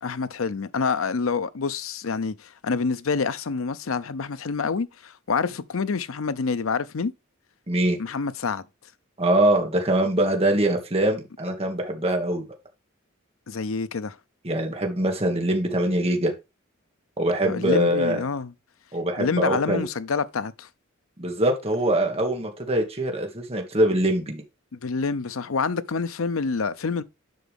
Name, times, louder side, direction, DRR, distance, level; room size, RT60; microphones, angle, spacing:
voice 1, 0.0-7.1 8.0-8.6 13.5-14.2 17.4-18.5 19.2-20.7 24.7-27.0, left 5 dB, 85° left, 0.6 m, -27 dB
voice 2, 7.7-8.0 9.2-12.4 14.4-16.3 17.2-18.2 18.9-19.8 21.2-24.4, right 1 dB, 30° right, 1.6 m, -23 dB
7.8 x 5.9 x 3.5 m
head